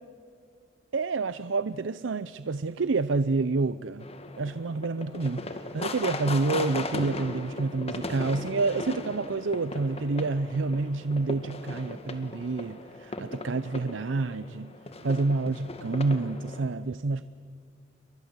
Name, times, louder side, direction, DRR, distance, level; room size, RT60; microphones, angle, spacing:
voice 1, 0.9-4.1 4.4-14.7 15.0-17.2, right 3 dB, 80° right, 0.6 m, -28 dB
sound 1, 4.0-16.7, left 2 dB, 35° left, 2.0 m, -38 dB
29.0 x 23.5 x 8.1 m
head